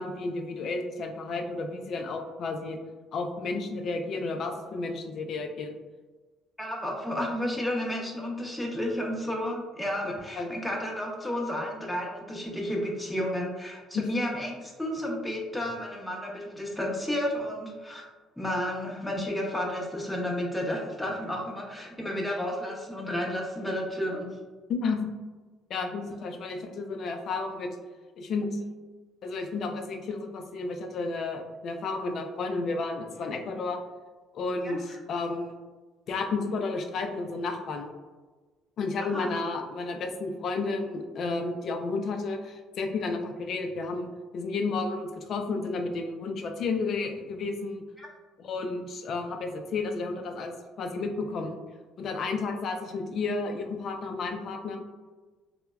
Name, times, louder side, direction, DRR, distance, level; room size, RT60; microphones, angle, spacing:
voice 1, 0.0-2.8 3.1-5.8 10.0-10.5 13.9-14.0 24.7-25.0 25.7-27.7 28.2-28.6 29.2-33.8 34.3-35.6 36.1-37.9 38.8-47.8 48.4-51.6 52.0-54.8, left 3 dB, 55° left, 4 dB, 0.3 m, -32 dB
voice 2, 6.6-18.1 18.4-24.4 34.6-35.0 39.1-39.3 48.0-48.1, left 1 dB, 5° left, -2 dB, 0.7 m, -32 dB
3.3 x 2.0 x 2.2 m, 1.3 s
supercardioid pair, 80°, 0 cm